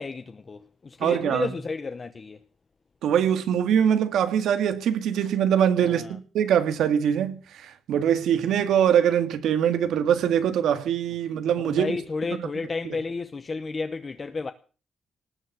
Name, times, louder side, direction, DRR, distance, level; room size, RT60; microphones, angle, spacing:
voice 1, 0.0-2.4 5.8-6.2 11.6-14.5, left 4 dB, 25° left, 0.7 m, -32 dB
voice 2, 1.0-1.5 3.0-12.0, right 9 dB, 85° right, 1.8 m, -23 dB
19.0 x 7.2 x 9.3 m
cardioid pair, 170°, 0 cm